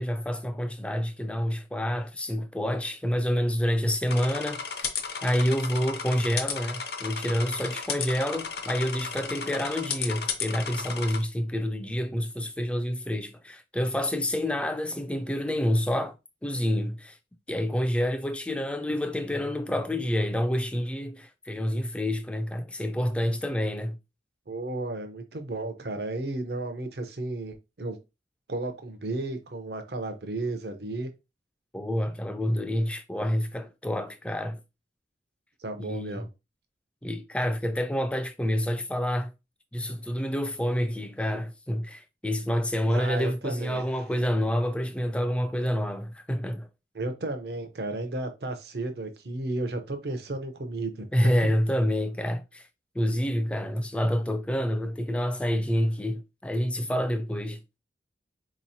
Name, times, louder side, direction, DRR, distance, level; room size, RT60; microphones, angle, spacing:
voice 1, 0.0-4.9 5.2-16.1 16.4-17.2 17.5-24.0 31.7-34.6 35.8-36.3 37.0-39.3 39.7-46.7 51.1-52.7 52.9-57.8, equal, 5° left, 0.3 m, -28 dB
sound 1, 4.1-11.2, left 6 dB, 65° left, 0.7 m, -34 dB
voice 2, 24.5-28.0 28.5-31.1 35.6-36.3 42.9-43.8 46.9-51.5, right 2 dB, 65° right, 0.7 m, -33 dB
4.1 x 3.0 x 2.7 m
head